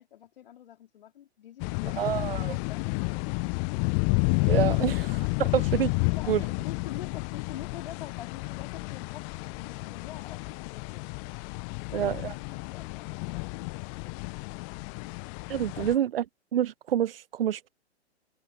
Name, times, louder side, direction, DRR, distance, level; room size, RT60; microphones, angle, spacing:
voice 1, 0.0-3.8 5.4-5.6 6.0-11.3 11.7-14.3 14.9-15.1 15.8-16.1, left 11 dB, 55° left, 4.1 m, -47 dB
sound 1, 1.6-15.9, left 38 dB, 30° left, 1.5 m, -31 dB
voice 2, 2.0-2.6 4.5-5.2 5.5-5.9 6.3-6.4 11.9-12.2 15.5-16.2 16.5-17.7, right 10 dB, 55° right, 0.6 m, -27 dB
figure-of-eight pair, 115°, 34 cm